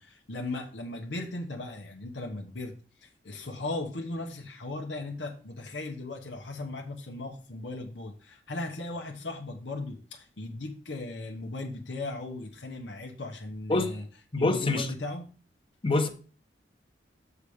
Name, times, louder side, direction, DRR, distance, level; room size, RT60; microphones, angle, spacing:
voice 1, 0.0-2.7 3.0-14.1 14.4-15.3, left 2 dB, 90° left, 1.0 m, -37 dB
voice 2, 14.3-14.9 15.8-16.1, left 2 dB, 30° left, 0.9 m, -25 dB
7.1 x 4.8 x 4.9 m
head